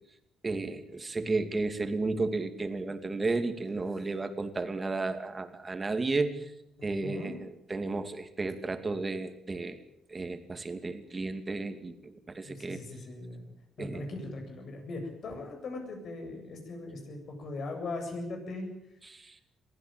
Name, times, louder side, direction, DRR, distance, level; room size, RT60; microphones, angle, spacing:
voice 1, 0.4-6.5 6.8-9.8 10.1-12.8 13.8-14.0 19.0-19.3, right 3 dB, 25° right, 8 dB, 2.6 m, -33 dB
voice 2, 7.0-7.3 12.4-13.5 13.8-18.7, left 2 dB, 60° left, 4 dB, 7.7 m, -39 dB
22.5 x 15.5 x 9.1 m, 0.83 s
cardioid pair, 90°, 0 cm